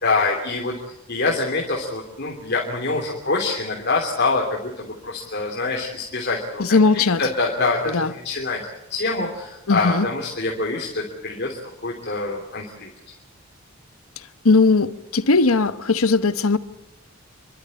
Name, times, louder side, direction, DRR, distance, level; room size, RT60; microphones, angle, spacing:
voice 1, 0.0-8.6 8.9-12.9, left 3 dB, 50° left, 3.1 m, -25 dB
voice 2, 6.6-7.2 7.9-8.1 9.7-10.1 14.4-16.6, left 3 dB, 90° left, 1.1 m, -18 dB
29.5 x 12.5 x 9.8 m
head